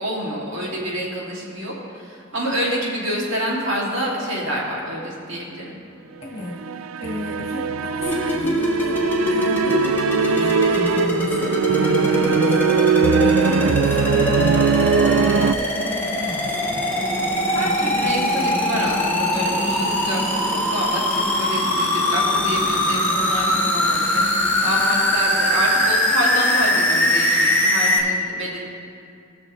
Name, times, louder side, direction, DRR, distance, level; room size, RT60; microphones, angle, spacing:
voice 1, 0.0-5.8 17.4-28.6, equal, 65° right, -5 dB, 2.6 m, -27 dB
voice 2, 6.2-6.6 7.0-9.0 9.3-16.9 28.0-28.1, left 2 dB, 30° left, -2 dB, 1.7 m, -33 dB
sound 1, 6.5-15.5, right 5 dB, 80° right, 0.4 m, -21 dB
sound 2, 8.0-28.0, left 1 dB, 10° left, 1.4 m, -22 dB
sound 3, 16.3-25.6, equal, 15° right, 1.1 m, -32 dB
20.0 x 6.8 x 3.2 m, 2.5 s
head